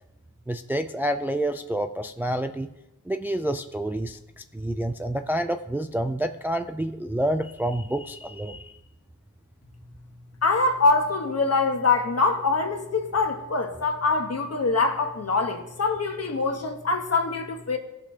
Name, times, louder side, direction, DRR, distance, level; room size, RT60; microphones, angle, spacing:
voice 1, 0.5-2.7 3.1-8.7, right 1 dB, 5° right, 7 dB, 0.3 m, -28 dB
voice 2, 10.4-17.8, left 3 dB, 50° left, 4 dB, 1.3 m, -24 dB
16.5 x 6.0 x 2.9 m, 0.94 s
wide cardioid pair, 115°, 31 cm